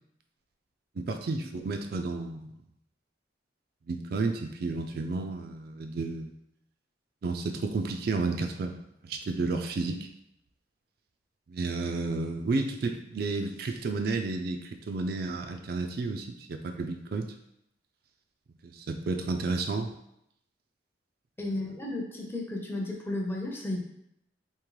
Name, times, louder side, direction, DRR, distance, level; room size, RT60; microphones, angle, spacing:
voice 1, 1.0-2.5 3.9-6.3 7.2-8.8 9.0-10.1 11.5-17.3 18.6-19.9, right 3 dB, 55° right, 5 dB, 0.3 m, -31 dB
voice 2, 21.4-23.8, left 2 dB, 10° left, 0 dB, 0.5 m, -33 dB
3.6 x 2.9 x 3.1 m, 0.77 s
head